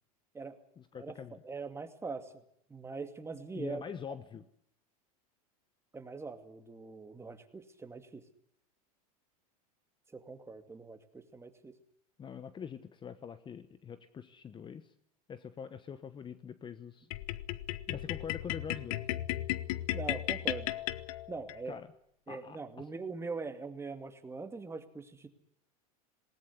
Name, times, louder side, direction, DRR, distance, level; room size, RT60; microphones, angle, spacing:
voice 1, 0.8-1.4 3.5-4.4 12.2-14.9 15.3-17.1 17.9-19.0 21.7-21.9 22.3-22.9, left 7 dB, 25° left, 13 dB, 1.1 m, -44 dB
voice 2, 1.4-2.3 2.7-3.8 5.9-8.2 10.1-11.7 19.9-20.7 21.3-21.8 22.3-25.3, right 4 dB, 15° right, 8 dB, 2.4 m, -42 dB
sound 1, 17.1-21.6, left 15 dB, 70° left, 1.1 m, -35 dB
19.0 x 18.5 x 9.8 m, 0.70 s
hypercardioid pair, 110°, 19 cm